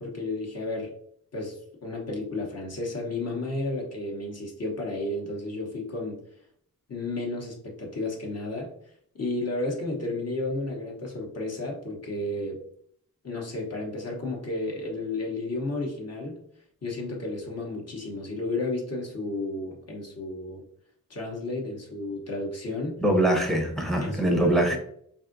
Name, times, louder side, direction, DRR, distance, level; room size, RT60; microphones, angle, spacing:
voice 1, 0.0-0.9 1.3-6.2 6.9-8.7 9.1-12.6 13.2-16.4 16.8-20.6 21.1-23.0 24.0-24.8, left 2 dB, 45° left, -1 dB, 0.8 m, -32 dB
voice 2, 23.0-24.8, right 1 dB, ahead, 3 dB, 0.6 m, -23 dB
3.5 x 2.6 x 2.5 m, 0.65 s
wide cardioid pair, 115°, 35 cm